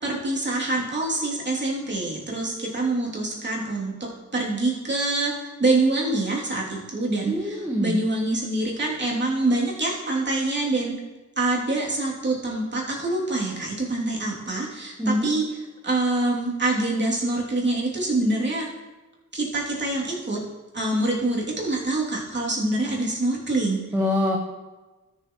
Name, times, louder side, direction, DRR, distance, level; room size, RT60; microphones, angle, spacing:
voice 1, 0.0-11.0 11.4-14.9 15.2-15.4 15.8-18.7 19.3-20.4 20.7-23.8, right 2 dB, 35° right, -4 dB, 3.0 m, -25 dB
voice 2, 7.3-8.0 15.0-15.3 23.9-24.4, left 1 dB, 5° right, -3 dB, 1.4 m, -24 dB
13.5 x 6.8 x 3.2 m, 1.2 s
cardioid pair, 75°, 32 cm